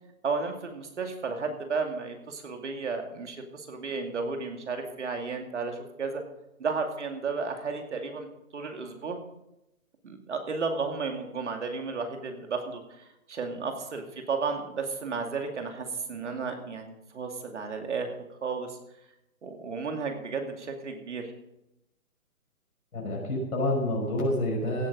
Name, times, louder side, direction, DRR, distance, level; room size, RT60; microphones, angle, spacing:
voice 1, 0.2-6.2 6.6-8.3 8.5-9.2 10.0-18.1 18.4-18.8 19.4-21.3, right 4 dB, 55° right, 4 dB, 2.5 m, -33 dB
voice 2, 22.9-24.9, left 1 dB, 85° left, -2 dB, 5.4 m, -28 dB
16.0 x 8.7 x 5.1 m, 0.87 s
hypercardioid pair, 180°, 43 cm